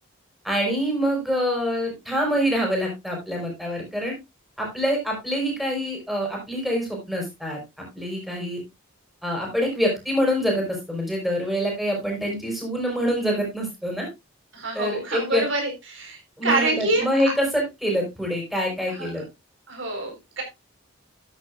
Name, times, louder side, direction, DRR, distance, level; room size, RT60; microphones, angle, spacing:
voice 1, 0.4-4.1 4.6-8.6 9.2-14.1 14.7-15.4 16.4-19.2, equal, ahead, 0 dB, 5.2 m, -25 dB
voice 2, 14.5-17.1 19.0-19.1 19.7-20.4, right 2 dB, 60° right, 3 dB, 4.2 m, -26 dB
12.5 x 9.9 x 2.4 m, 0.22 s
head